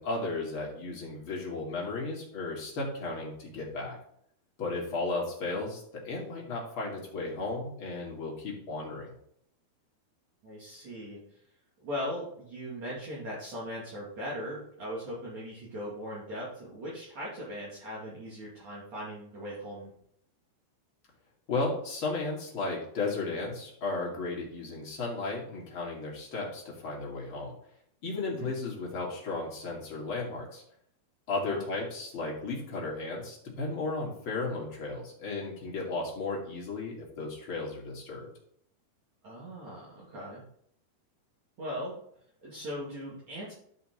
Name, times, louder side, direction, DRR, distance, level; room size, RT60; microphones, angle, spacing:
voice 1, 0.0-4.0 4.6-9.1 21.5-27.5 28.0-30.6 31.3-38.3, left 3 dB, 35° left, -3 dB, 2.6 m, -34 dB
voice 2, 10.4-11.2 11.8-19.9 28.3-28.5 31.5-31.6 39.2-40.4 41.6-42.0 42.4-43.5, equal, 45° right, -7 dB, 3.2 m, -39 dB
12.5 x 5.7 x 3.8 m, 0.68 s
omnidirectional pair, 4.7 m